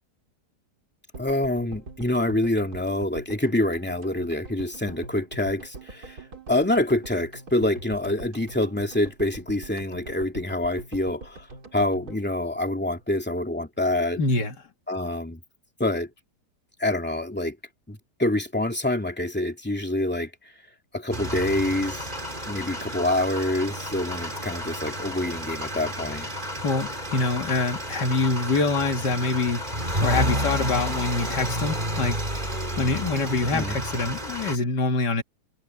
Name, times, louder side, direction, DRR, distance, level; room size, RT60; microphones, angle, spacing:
sound 1, 1.1-13.4 13.6-13.7 13.9-14.0, right 3 dB, 65° right, 3.7 m, -44 dB
voice 1, 1.2-6.2 6.5-11.5 11.7-14.2 14.9-15.4 15.8-16.1 16.8-17.6 17.9-20.5 20.9-22.1 22.5-26.3 33.5-33.8, left 1 dB, 5° left, 2.7 m, -26 dB
voice 2, 14.2-14.6 26.6-29.6 30.0-32.2 32.8-35.2, left 3 dB, 85° left, 2.6 m, -25 dB
sound 2, 21.1-34.6, equal, 30° right, 3.9 m, -31 dB
omnidirectional pair, 1.8 m